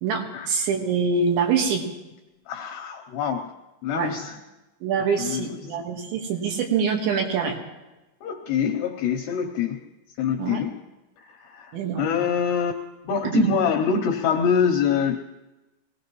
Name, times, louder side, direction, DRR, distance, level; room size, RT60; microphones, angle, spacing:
voice 1, 0.0-1.8 3.9-4.1 4.8-7.6 10.4-10.6 11.7-12.2 13.3-13.5, right 5 dB, 70° right, 1 dB, 3.5 m, -25 dB
voice 2, 2.5-3.5 3.8-4.4 5.2-5.8 8.2-9.8 10.2-10.7 11.3-12.8 13.1-15.2, left 7 dB, 80° left, 2 dB, 2.4 m, -25 dB
23.0 x 17.0 x 3.1 m, 1.0 s
omnidirectional pair, 5.8 m